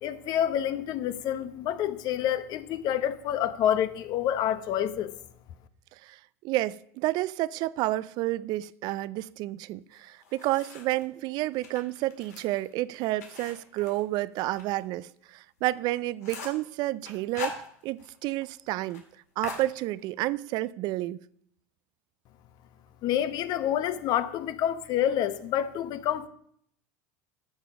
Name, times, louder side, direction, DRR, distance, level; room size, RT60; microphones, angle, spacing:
voice 1, 0.0-5.1 23.0-26.3, left 10 dB, 55° left, 0.9 m, -28 dB
voice 2, 6.4-17.5 17.8-19.0 19.4-21.2, right 17 dB, 55° right, 0.4 m, -30 dB
sound 1, 9.9-11.1 11.5-14.8 15.1-15.2 15.6-15.7 16.0-16.7 17.1-18.2 18.4-18.5 18.8-19.0 19.4-20.3, left 5 dB, 90° left, 2.2 m, -41 dB
11.0 x 7.2 x 5.1 m
hypercardioid pair, 95°, 8 cm